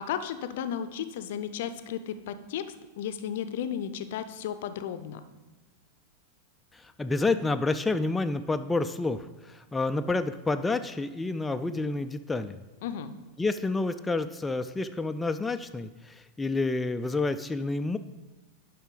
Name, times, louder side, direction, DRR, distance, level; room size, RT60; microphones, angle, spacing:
voice 1, 0.0-5.2 12.8-13.1, left 9 dB, 55° left, 11 dB, 0.6 m, -34 dB
voice 2, 6.7-12.6 13.4-18.0, left 3 dB, 10° left, 9 dB, 0.3 m, -29 dB
11.0 x 5.7 x 3.9 m, 1.2 s
figure-of-eight pair, 90°, 0 cm